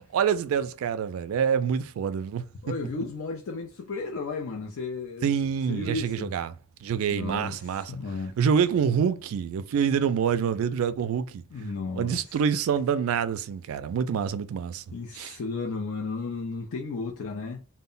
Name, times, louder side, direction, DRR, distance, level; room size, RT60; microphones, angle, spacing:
voice 1, 0.0-2.4 5.2-6.5 6.8-7.9 8.4-11.4 11.9-14.8 15.1-15.4, right 7 dB, 70° right, 0.3 m, -26 dB
voice 2, 2.6-5.3 5.7-6.3 7.1-8.4 11.5-12.4 14.1-14.2 14.9-17.6, left 3 dB, 65° left, 0.4 m, -34 dB
2.1 x 2.0 x 3.7 m
head